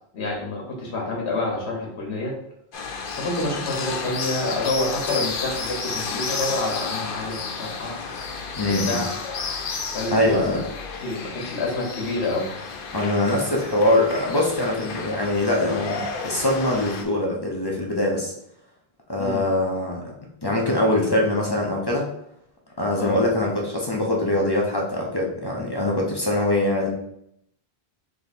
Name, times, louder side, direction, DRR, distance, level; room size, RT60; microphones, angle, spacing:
voice 1, 0.1-2.4 3.2-8.0 8.6-9.4 9.9-10.4 11.0-12.5 19.2-19.4 23.0-23.1, left 2 dB, 85° left, -1 dB, 1.3 m, -28 dB
sound 1, 2.7-17.0, left 4 dB, 60° left, 0.8 m, -32 dB
voice 2, 8.5-9.0 10.1-10.6 12.9-18.3 19.1-20.1 20.4-22.1 22.8-26.9, left 1 dB, 25° left, -2 dB, 0.6 m, -23 dB
3.5 x 3.4 x 4.1 m, 0.76 s
omnidirectional pair, 1.1 m